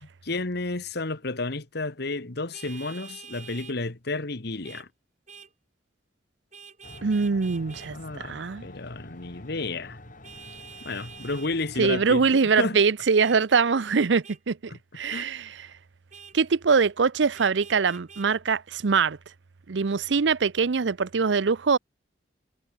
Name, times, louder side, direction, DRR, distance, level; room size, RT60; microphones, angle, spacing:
voice 1, 0.0-4.9 7.9-8.4 8.6-10.0 10.8-12.8 14.7-14.8 15.1-15.3, left 3 dB, 60° left, 1.6 m, -32 dB
Vehicle horn car horn honking, 2.5-3.8 4.6-4.9 5.3-5.5 6.5-7.9 10.2-11.5 13.2-13.4 14.2-14.4 15.1-15.3 16.1-16.4 17.3-18.3, right 7 dB, 40° right, 3.8 m, -46 dB
sound 1, 6.8-12.3, left 1 dB, 45° left, 7.4 m, -47 dB
voice 2, 7.0-8.7 11.8-15.7 16.3-19.2 19.7-21.8, right 5 dB, 75° right, 0.6 m, -23 dB
head